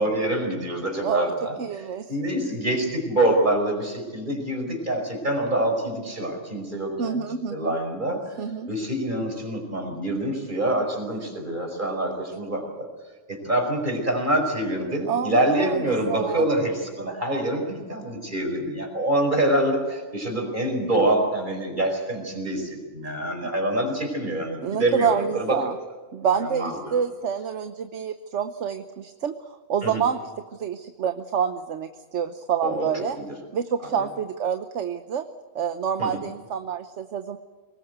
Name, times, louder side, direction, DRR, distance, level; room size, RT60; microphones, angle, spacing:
voice 1, 0.0-7.2 7.5-8.4 8.7-12.9 13.3-25.8 26.4-27.0 29.8-30.0 32.6-33.3 33.8-34.1 36.0-36.2, right 1 dB, 35° right, 3 dB, 5.3 m, -26 dB
voice 2, 1.0-1.3 1.6-2.1 7.0-7.7 8.4-8.7 15.1-16.4 24.6-25.7 26.1-29.3 29.7-30.2 30.5-33.2 33.5-35.2 35.5-37.4, right 7 dB, 60° right, 9 dB, 1.2 m, -27 dB
24.0 x 20.0 x 8.0 m, 1.3 s
omnidirectional pair, 1.4 m